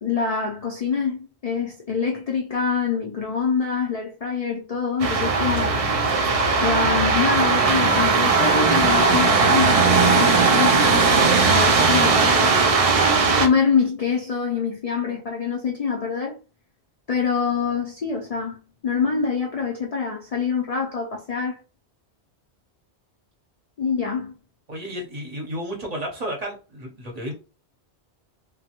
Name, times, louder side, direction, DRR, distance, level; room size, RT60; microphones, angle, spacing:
voice 1, 0.0-5.8 6.6-12.4 13.4-16.4 17.1-21.6 23.8-24.3, left 6 dB, 55° left, 0.4 m, -25 dB
sound 1, 5.0-13.5, right 4 dB, 60° right, 0.3 m, -18 dB
voice 2, 24.7-27.3, equal, 40° right, 0.8 m, -32 dB
3.0 x 2.1 x 2.8 m
omnidirectional pair, 1.2 m